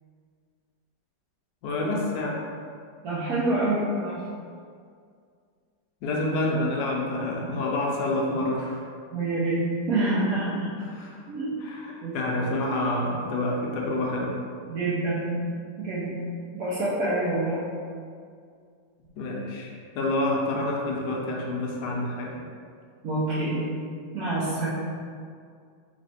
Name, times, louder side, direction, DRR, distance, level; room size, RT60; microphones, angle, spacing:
voice 1, 1.6-2.4 6.0-8.8 10.8-11.2 11.6-14.3 19.2-19.7 19.9-22.4, left 2 dB, 70° left, -1 dB, 1.1 m, -28 dB
voice 2, 3.0-4.2 9.1-9.6 9.9-10.7 11.3-11.5 12.0-12.1 14.7-15.3 15.8-16.1 16.5-17.6 23.0-23.6 24.1-24.7, right 2 dB, 60° right, -11 dB, 1.1 m, -26 dB
3.2 x 3.1 x 4.2 m, 2.2 s
omnidirectional pair, 2.0 m